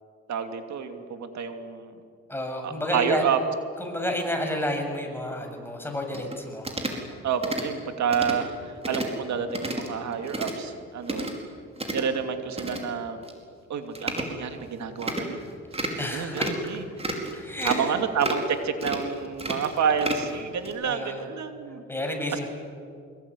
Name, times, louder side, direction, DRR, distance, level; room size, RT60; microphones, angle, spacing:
voice 1, 0.3-1.9 2.6-3.4 7.2-11.3 11.9-13.2 13.7-15.4 16.1-16.8 17.6-21.8 22.3-22.5, right 6 dB, 65° right, 7 dB, 2.8 m, -29 dB
voice 2, 2.3-3.2 3.8-6.7 16.0-16.5 17.3-18.0 20.8-21.3 21.9-22.5, left 1 dB, 5° left, 3 dB, 7.1 m, -30 dB
sound 1, 6.1-6.4 6.6-7.0 7.4-7.7 8.1-8.4 8.8-9.2 9.5-9.9 10.1-10.5 11.0-11.3 11.8-12.0 12.5-12.8 13.2-13.3 14.0-14.3 15.0-15.2 15.7-16.0 16.4-16.7 17.0-17.3 17.6-17.9 18.2-18.5 18.8-19.0 19.4-20.3 20.6-20.7, right 1 dB, 20° right, 5.1 m, -31 dB
25.0 x 22.0 x 10.0 m, 2.3 s
cardioid pair, 90°, 30 cm